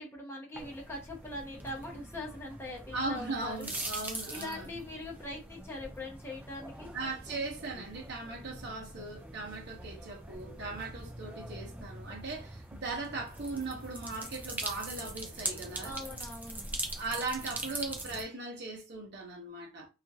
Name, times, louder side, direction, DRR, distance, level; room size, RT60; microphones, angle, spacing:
voice 1, 0.0-3.7 4.3-6.9 15.8-16.6, left 1 dB, 10° left, 0.7 m, -42 dB
sound 1, 0.5-18.2, right 2 dB, 5° right, 0.3 m, -42 dB
voice 2, 2.9-4.7 6.9-15.9 17.0-19.9, right 3 dB, 50° right, 0.7 m, -38 dB
2.8 x 2.4 x 2.7 m
head